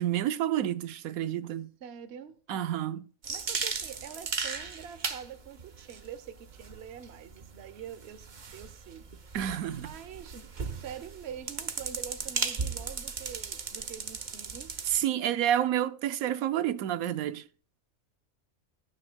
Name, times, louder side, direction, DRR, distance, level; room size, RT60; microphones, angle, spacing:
voice 1, 0.0-1.7 2.5-3.1 9.3-9.9 14.9-17.4, right 11 dB, 90° right, 1.1 m, -29 dB
voice 2, 1.8-2.4 3.3-8.3 8.5-9.1 9.7-14.8, right 8 dB, 55° right, 1.0 m, -45 dB
sound 1, 3.2-15.0, right 5 dB, 40° right, 0.8 m, -37 dB
18.0 x 9.9 x 2.2 m
omnidirectional pair, 1.4 m